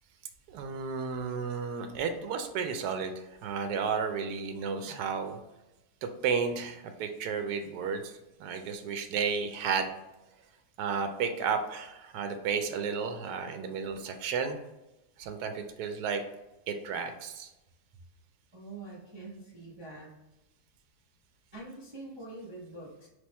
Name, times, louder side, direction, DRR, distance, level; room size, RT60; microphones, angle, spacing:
voice 1, 0.5-5.4 6.0-9.9 10.8-14.6 15.2-16.2 16.7-17.5, right 6 dB, 85° right, 6 dB, 1.1 m, -33 dB
voice 2, 18.5-20.1 21.5-23.1, right 2 dB, 30° right, -5 dB, 0.5 m, -45 dB
3.4 x 3.1 x 4.1 m, 0.99 s
omnidirectional pair, 1.7 m